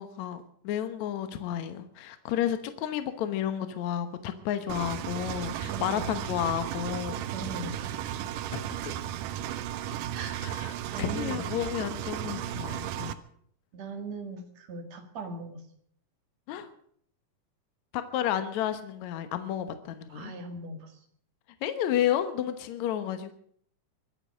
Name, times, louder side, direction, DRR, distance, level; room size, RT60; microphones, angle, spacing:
voice 1, 0.0-7.2 8.5-9.0 10.4-10.7 11.0-13.2 16.5-16.7 17.9-20.3 21.6-23.3, left 10 dB, 70° left, 9 dB, 2.4 m, -31 dB
Engine, 4.7-13.1, right 11 dB, 90° right, 2.4 m, -35 dB
voice 2, 5.7-6.1 7.3-8.3 10.1-10.5 10.9-11.5 13.7-15.6 20.1-21.0, right 2 dB, 60° right, 6 dB, 3.1 m, -40 dB
23.0 x 9.0 x 6.4 m, 0.63 s
omnidirectional pair, 3.6 m